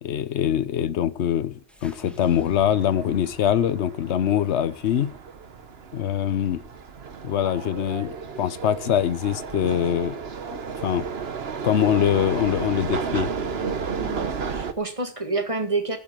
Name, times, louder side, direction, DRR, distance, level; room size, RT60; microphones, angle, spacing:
voice 1, 0.0-5.1 5.9-6.6 7.2-10.2 10.5-11.1 11.6-13.3, left 10 dB, 65° left, 1.1 m, -23 dB
sound 1, 1.7-6.0, equal, ahead, 1.5 m, -49 dB
sound 2, 2.1-14.7, right 5 dB, 55° right, 1.3 m, -33 dB
voice 2, 14.0-16.0, right 3 dB, 25° right, 2.0 m, -28 dB
14.0 x 7.1 x 7.6 m
omnidirectional pair, 1.3 m